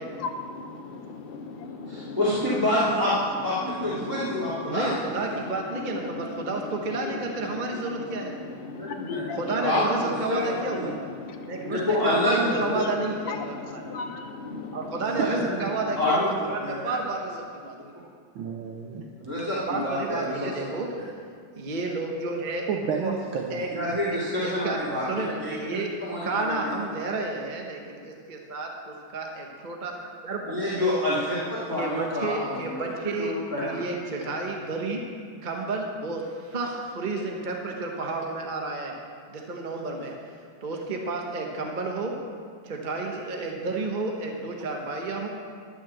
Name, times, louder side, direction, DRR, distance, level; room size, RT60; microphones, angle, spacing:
voice 1, 0.0-2.3 2.8-3.2 3.5-5.5 5.7-12.1 12.5-15.2, left 4 dB, 50° left, 0.6 m, -37 dB
voice 2, 1.9-3.1 3.4-5.0 8.7-10.4 10.7-10.9 11.6-12.8 15.1-15.5 16.0-16.3 16.6-16.9 19.2-20.5 21.0-21.1 23.7-25.0 25.4-25.5 26.0-26.7 30.5-32.7 33.0-33.8, left 1 dB, 10° right, 2.3 m, -27 dB
voice 3, 4.7-8.3 9.3-11.1 11.4-13.9 14.7-17.8 19.7-20.9 21.6-22.7 23.0-23.1 23.5-23.7 24.1-24.8 25.1-25.9 26.2-29.9 30.2-30.9 31.8-33.4 33.6-35.0 35.4-38.9 39.3-42.1 42.6-45.3, right 3 dB, 40° right, 0.7 m, -31 dB
voice 4, 15.0-15.5 18.3-19.3 22.7-23.7, right 6 dB, 80° right, 1.5 m, -31 dB
12.0 x 6.5 x 7.6 m
omnidirectional pair, 2.2 m